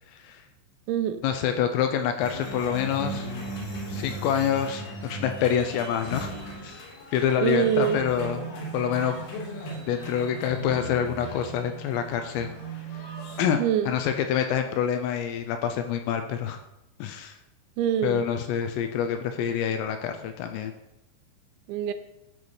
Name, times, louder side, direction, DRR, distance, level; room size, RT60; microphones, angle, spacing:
voice 1, 0.1-0.4 1.2-3.3 3.9-6.3 6.6-6.8 7.1-8.5 8.7-9.2 9.9-12.5 13.4-16.6 17.0-17.4 18.0-20.7, left 8 dB, 85° left, 7 dB, 2.6 m, -27 dB
voice 2, 0.9-1.2 7.4-8.0 13.6-14.0 17.8-18.3 21.7-21.9, right 10 dB, 85° right, 10 dB, 2.8 m, -25 dB
sound 1, 2.2-13.5, right 1 dB, 60° left, 3.3 m, -37 dB
13.0 x 5.0 x 3.2 m, 0.92 s
omnidirectional pair, 5.3 m